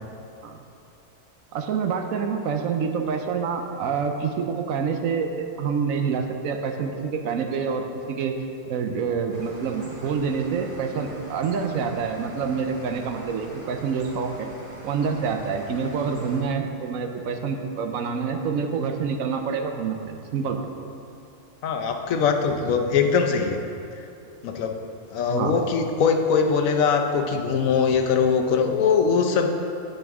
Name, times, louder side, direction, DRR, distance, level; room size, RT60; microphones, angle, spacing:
voice 1, 1.5-8.3 8.7-14.5 14.8-20.7 25.3-25.6, right 6 dB, 80° right, 5 dB, 1.1 m, -27 dB
sound 1, 9.3-16.4, right 1 dB, 40° right, 1.5 m, -44 dB
voice 2, 21.6-23.6 24.4-24.8 25.1-29.5, left 6 dB, 80° left, 4 dB, 1.1 m, -21 dB
8.9 x 7.9 x 3.6 m, 2.6 s
omnidirectional pair, 1.4 m